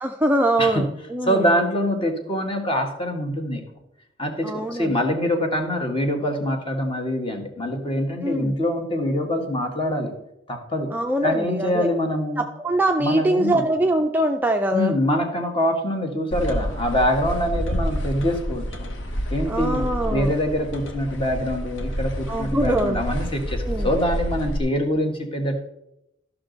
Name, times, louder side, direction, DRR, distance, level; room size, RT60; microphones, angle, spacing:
voice 1, 0.0-1.5 4.4-5.0 8.2-8.5 10.9-11.9 12.4-14.9 19.5-20.3 22.3-23.0 23.6-23.9, right 1 dB, 10° right, 4 dB, 0.4 m, -23 dB
voice 2, 1.2-3.6 4.2-10.1 10.5-10.9 11.2-12.4 13.0-13.6 14.7-18.9 19.3-19.8 20.1-25.6, equal, 30° left, 4 dB, 1.4 m, -24 dB
sound 1, 16.3-24.6, equal, 70° left, 1.1 m, -29 dB
13.5 x 6.0 x 3.9 m, 0.84 s
head